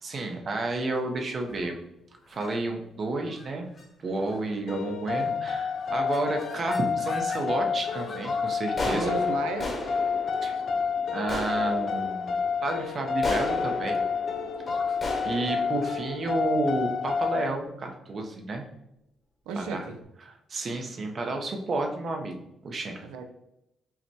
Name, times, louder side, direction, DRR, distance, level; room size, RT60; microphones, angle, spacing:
voice 1, 0.0-1.8 2.3-3.7 4.0-9.1 10.4-10.6 11.1-14.0 15.2-18.7 19.6-19.9 20.2-22.4 22.6-23.0, right 2 dB, 50° right, 3 dB, 0.7 m, -31 dB
sound 1, 1.4-1.8 2.3-2.6 3.2-3.5 3.8-3.9 4.2-4.6 5.1-5.5 5.8-7.4 7.8-17.0, left 2 dB, 40° left, 1.1 m, -37 dB
sound 2, 4.7-17.5, left 5 dB, 60° left, 0.4 m, -29 dB
voice 2, 8.9-9.8 19.5-20.0 23.0-23.3, right 4 dB, 85° right, 6 dB, 0.4 m, -34 dB
5.7 x 2.1 x 2.8 m, 0.85 s
supercardioid pair, 60°, 0 cm